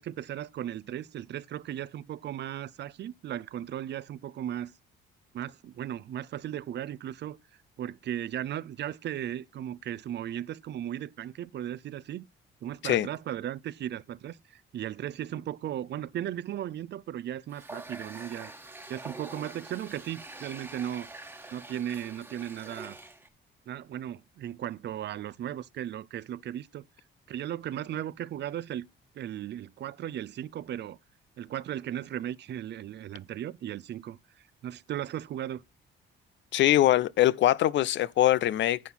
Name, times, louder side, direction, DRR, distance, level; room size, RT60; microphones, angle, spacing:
voice 1, 0.0-4.7 5.3-7.4 7.8-12.3 12.6-18.5 18.9-21.1 21.5-23.0 23.7-26.8 27.3-28.9 29.1-31.0 31.4-34.2 34.6-35.6, right 11 dB, 60° right, 0.6 m, -36 dB
Water tap faucet, 17.5-23.3, right 2 dB, 10° right, 1.3 m, -45 dB
voice 2, 36.5-38.8, left 13 dB, 70° left, 0.5 m, -22 dB
10.0 x 5.9 x 5.6 m
cardioid pair, 90°, 20 cm